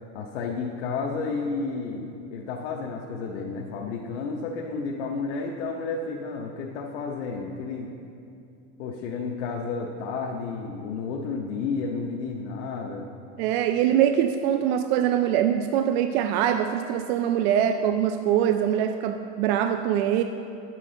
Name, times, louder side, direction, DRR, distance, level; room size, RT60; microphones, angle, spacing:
voice 1, 0.1-7.9 8.8-13.1, left 4 dB, 80° left, -1 dB, 0.8 m, -31 dB
voice 2, 13.4-20.2, right 10 dB, 65° right, 7 dB, 0.4 m, -23 dB
9.9 x 7.5 x 3.8 m, 2.6 s
supercardioid pair, 160°, 34 cm